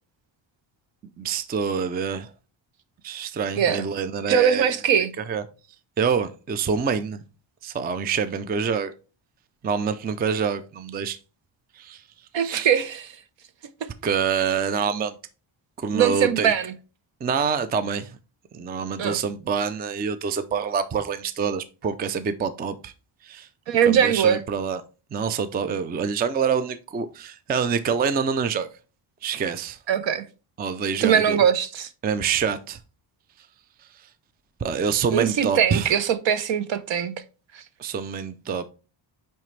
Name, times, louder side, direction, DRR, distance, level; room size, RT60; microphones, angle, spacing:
voice 1, 1.2-2.3 3.0-4.7 5.3-5.4 6.0-7.2 7.6-8.9 9.6-11.2 11.7-12.0 12.4-12.7 14.0-15.2 15.8-16.5 17.2-18.2 18.5-22.9 23.2-23.5 23.9-24.8 25.1-28.7 29.2-29.8 30.6-31.4 32.0-32.8 34.6-36.0 37.8-38.7, right 6 dB, 20° right, 0.3 m, -26 dB
voice 2, 4.3-5.1 12.3-13.1 15.9-16.7 19.0-19.2 23.7-24.4 29.9-30.2 31.0-31.9 35.1-37.1 37.5-37.6, right 8 dB, 65° right, 0.9 m, -21 dB
8.8 x 3.4 x 3.2 m
cardioid pair, 145°, 48 cm